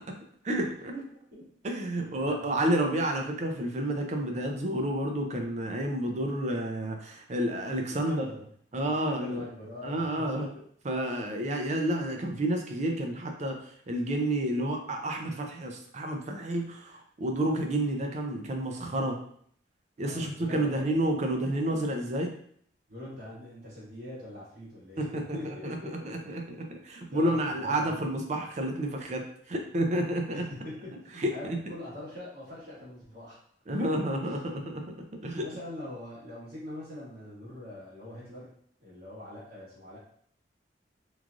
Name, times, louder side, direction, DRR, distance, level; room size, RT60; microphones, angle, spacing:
voice 1, 0.4-0.9 1.6-8.2 8.7-9.4 9.8-10.5 10.8-13.6 13.9-19.2 20.0-22.4 25.0-25.4 25.6-30.5 31.2-31.6 33.7-35.5, right 1 dB, 40° right, 3 dB, 0.4 m, -30 dB
voice 2, 2.3-2.8 7.9-8.5 8.8-10.5 20.0-20.8 22.9-25.0 25.3-26.1 27.1-28.1 30.3-33.4 33.8-34.0 35.4-38.5 38.8-40.0, left 1 dB, 55° right, -9 dB, 1.5 m, -43 dB
3.1 x 2.3 x 2.5 m, 0.62 s
head